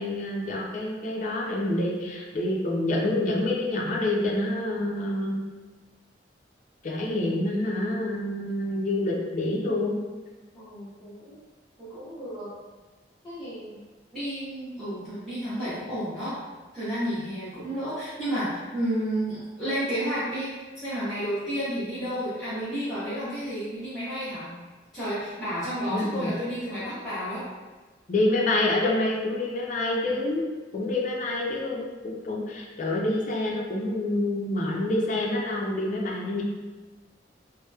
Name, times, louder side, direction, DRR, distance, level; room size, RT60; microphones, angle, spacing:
voice 1, 0.0-5.4 6.8-10.0 25.9-26.3 28.1-30.4 30.7-36.4, left 1 dB, 45° left, -2 dB, 0.4 m, -27 dB
voice 2, 10.5-11.4 11.8-12.5 13.2-13.8 14.1-16.3 16.7-24.5 24.9-27.4, equal, ahead, -17 dB, 0.7 m, -31 dB
2.8 x 2.0 x 2.2 m, 1.2 s
head